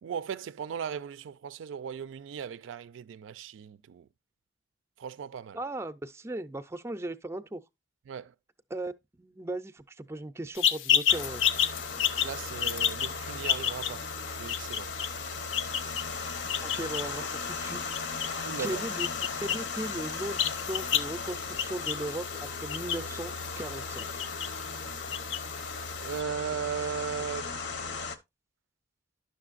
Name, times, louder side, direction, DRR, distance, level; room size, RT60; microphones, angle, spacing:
voice 1, 0.0-4.1 5.0-5.6 8.1-8.3 12.2-14.9 18.4-18.8 26.0-27.5, right 7 dB, 80° right, 0.3 m, -37 dB
voice 2, 5.5-7.6 8.7-8.9 9.2-11.4 16.6-18.2 18.6-19.1 19.4-24.3 24.7-24.8, right 1 dB, 15° right, 0.4 m, -37 dB
sound 1, 10.6-26.2, left 9 dB, 80° left, 0.5 m, -32 dB
sound 2, 11.1-28.2, left 4 dB, 65° left, 0.8 m, -37 dB
10.5 x 6.3 x 2.4 m
head